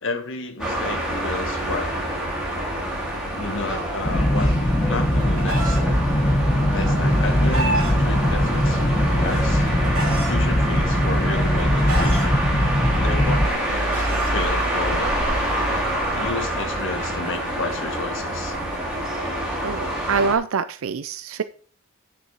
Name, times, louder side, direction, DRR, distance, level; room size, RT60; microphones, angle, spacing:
voice 1, 0.0-1.9 3.3-4.5 4.9-5.9 6.7-8.8 9.2-9.7 10.3-12.3 13.0-15.2 16.1-18.6, left 3 dB, 60° left, 7 dB, 1.4 m, -31 dB
sound 1, 0.6-20.3, right 1 dB, 5° right, 3.3 m, -26 dB
sound 2, 4.0-13.5, equal, 25° left, 0.9 m, -21 dB
Chicken rooster, 4.7-5.8 6.9-7.9 8.9-10.3 11.2-12.3 13.3-14.3 15.4-18.8, right 2 dB, 90° right, 3.0 m, -31 dB
voice 2, 19.6-21.4, right 5 dB, 70° right, 13 dB, 0.5 m, -25 dB
9.1 x 6.9 x 4.8 m, 0.43 s
head